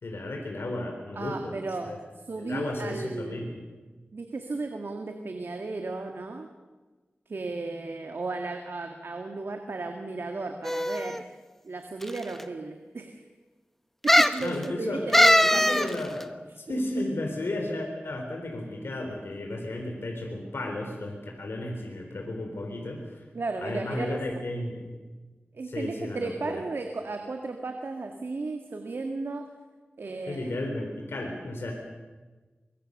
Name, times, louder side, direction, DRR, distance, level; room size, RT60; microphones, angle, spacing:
voice 1, 0.0-1.6 1.9-2.0 2.4-3.6 14.4-15.1 15.4-16.3 16.7-23.2 23.6-24.9 25.6-26.6 30.3-31.7, left 1 dB, 85° left, 2 dB, 3.9 m, -33 dB
voice 2, 1.1-3.5 4.1-6.5 7.3-11.2 11.6-13.2 14.0-16.0 16.7-17.0 23.3-24.4 25.5-29.4 30.0-30.6, right 3 dB, 75° right, 4 dB, 2.0 m, -35 dB
sound 1, 10.6-11.2 12.0-12.1 12.4-12.5 14.1-14.4 15.1-15.9 16.2-16.3, equal, 5° left, 1.2 m, -20 dB
24.0 x 22.5 x 6.8 m, 1.3 s
wide cardioid pair, 65°, 4 cm